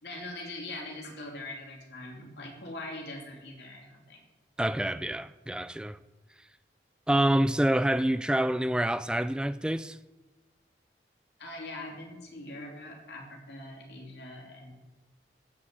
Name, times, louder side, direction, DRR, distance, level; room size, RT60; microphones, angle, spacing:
voice 1, 0.0-4.2 11.4-14.7, left 2 dB, 75° left, 3.0 m, -42 dB
voice 2, 4.6-6.0 7.1-10.0, right 1 dB, 5° right, 0.3 m, -27 dB
14.0 x 6.1 x 8.0 m
head